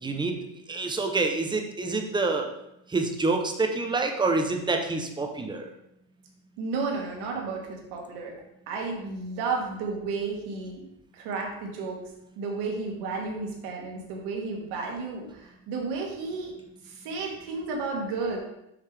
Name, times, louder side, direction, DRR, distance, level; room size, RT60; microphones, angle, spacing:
voice 1, 0.0-0.4 0.7-2.5 2.9-5.7, right 3 dB, 10° right, 4 dB, 0.7 m, -27 dB
voice 2, 6.6-8.3 8.7-10.8 11.1-12.0 12.4-16.5 16.8-18.4, right 4 dB, 65° right, 0 dB, 2.0 m, -32 dB
6.8 x 5.3 x 3.4 m, 0.83 s
supercardioid pair, 125°, 43 cm